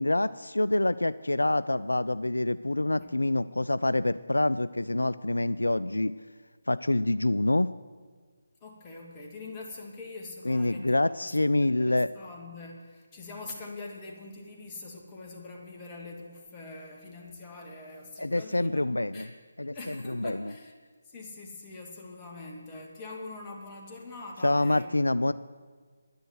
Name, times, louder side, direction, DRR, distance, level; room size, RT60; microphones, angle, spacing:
voice 1, 0.0-6.1 6.7-7.7 10.5-12.1 18.2-19.3 19.6-20.5 24.4-25.3, left 2 dB, 80° left, 15 dB, 0.3 m, -26 dB
voice 2, 8.6-18.9 19.1-19.3 19.7-20.7 21.0-24.9 25.3-25.4, left 3 dB, 20° left, -1 dB, 2.0 m, -44 dB
10.5 x 10.5 x 7.9 m, 1.5 s
figure-of-eight pair, 150°, 0 cm